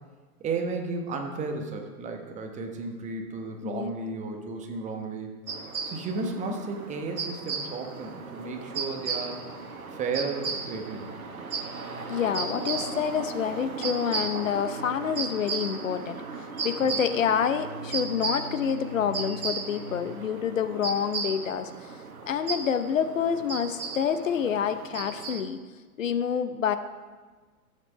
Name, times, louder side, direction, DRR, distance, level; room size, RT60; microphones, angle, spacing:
voice 1, 0.4-5.3 5.8-9.4 9.9-11.1, right 3 dB, 15° right, 3 dB, 1.1 m, -33 dB
sound 1, 5.5-25.4, right 4 dB, 65° right, 1.4 m, -35 dB
voice 2, 12.1-16.2 16.6-21.9 22.3-25.6 26.0-26.8, left 7 dB, 60° left, 10 dB, 0.8 m, -27 dB
13.0 x 7.6 x 5.1 m, 1.4 s
figure-of-eight pair, 110°, 45 cm